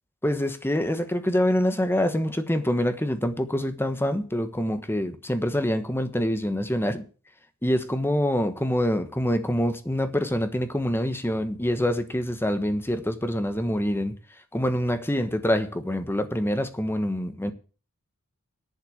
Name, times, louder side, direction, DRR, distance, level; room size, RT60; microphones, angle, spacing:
voice 1, 0.2-7.0 7.6-14.1 14.5-17.5, equal, 10° left, 1.3 m, -25 dB
11.0 x 8.1 x 8.0 m
head